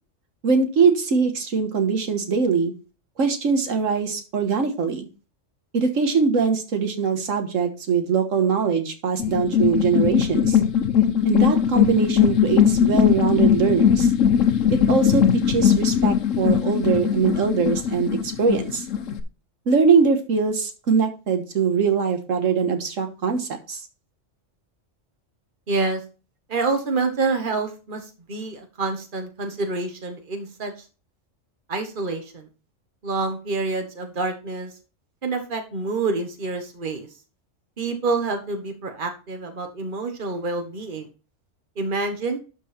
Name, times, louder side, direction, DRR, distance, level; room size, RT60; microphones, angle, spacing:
voice 1, 0.4-2.7 3.2-5.1 5.7-10.6 11.2-14.1 14.7-18.9 19.7-23.8, right 5 dB, 85° right, 6 dB, 1.7 m, -22 dB
sound 1, 9.2-19.2, left 8 dB, 85° left, 1.3 m, -20 dB
voice 2, 25.7-26.0 26.5-30.7 31.7-32.5 33.0-34.7 35.2-37.1 37.8-41.1 41.8-42.4, right 3 dB, 45° right, 5 dB, 1.6 m, -27 dB
12.0 x 4.6 x 4.3 m, 0.33 s
omnidirectional pair, 1.3 m